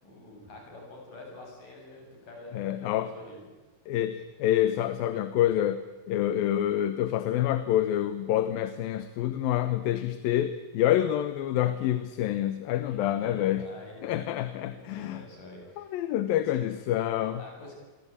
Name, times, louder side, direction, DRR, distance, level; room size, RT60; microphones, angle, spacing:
voice 1, 0.0-3.4 6.3-6.5 12.8-14.2 14.7-16.0 16.5-16.6 17.3-17.7, left 2 dB, 65° left, 0 dB, 9.4 m, -47 dB
voice 2, 2.5-3.1 3.9-5.8 6.1-13.7 14.0-15.2 15.8-17.4, left 12 dB, 85° left, 12 dB, 2.8 m, -27 dB
28.0 x 23.5 x 8.7 m, 1.2 s
omnidirectional pair, 4.0 m